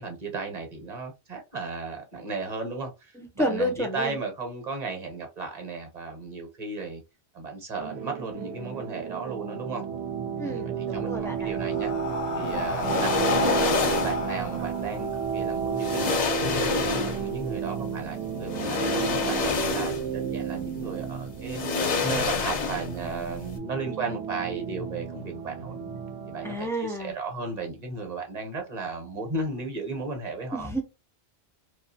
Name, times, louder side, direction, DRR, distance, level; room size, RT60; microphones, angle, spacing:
voice 1, 0.0-7.0 7.3-9.8 10.4-11.9 12.3-16.2 16.5-25.8 26.3-30.7, right 3 dB, 40° right, 0.9 m, -35 dB
voice 2, 3.2-4.2 10.4-11.5 26.4-27.1 30.5-30.8, equal, 5° left, 0.4 m, -30 dB
sound 1, 7.8-26.6, right 7 dB, 75° right, 0.8 m, -32 dB
Breathing, 11.0-15.7, left 4 dB, 75° left, 0.8 m, -31 dB
sound 2, 12.7-14.3 15.3-15.4 15.8-17.4 18.5-20.2 20.5-20.7 21.5-23.1 23.3-23.5, left 5 dB, 50° left, 0.6 m, -28 dB
2.6 x 2.4 x 2.7 m
omnidirectional pair, 1.1 m